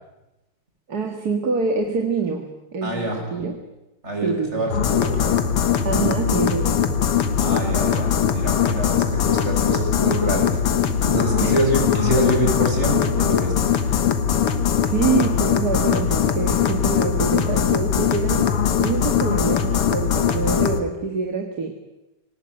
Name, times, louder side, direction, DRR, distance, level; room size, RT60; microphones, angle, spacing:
voice 1, 0.9-3.6 4.2-4.8 5.8-7.0 11.4-11.6 14.8-21.7, right 5 dB, 45° right, 4 dB, 2.3 m, -26 dB
voice 2, 2.8-3.3 4.0-5.4 7.4-14.0, equal, 30° right, 1 dB, 6.4 m, -26 dB
sound 1, 4.7-20.8, left 8 dB, 85° left, 2.3 m, -21 dB
25.5 x 18.5 x 9.2 m, 1.0 s
omnidirectional pair, 2.4 m